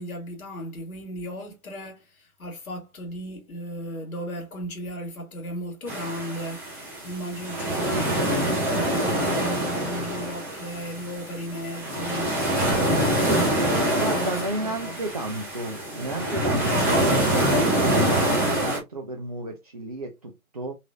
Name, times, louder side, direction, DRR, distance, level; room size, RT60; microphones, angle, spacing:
voice 1, 0.0-14.9, equal, 70° left, 2.1 m, -35 dB
sound 1, 5.9-18.8, right 1 dB, 5° right, 0.7 m, -25 dB
voice 2, 14.0-20.7, right 2 dB, 30° right, 0.4 m, -32 dB
4.0 x 3.0 x 2.4 m
figure-of-eight pair, 125°, 44 cm